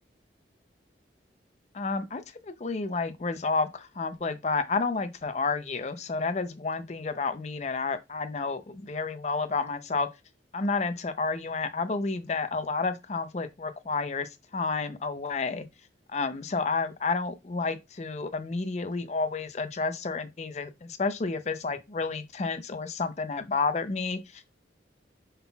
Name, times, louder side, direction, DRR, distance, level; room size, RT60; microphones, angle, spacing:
voice 1, 1.7-10.1 10.5-15.6 16.1-24.5, left 4 dB, 40° left, 0.5 m, -30 dB
5.5 x 3.9 x 2.3 m
head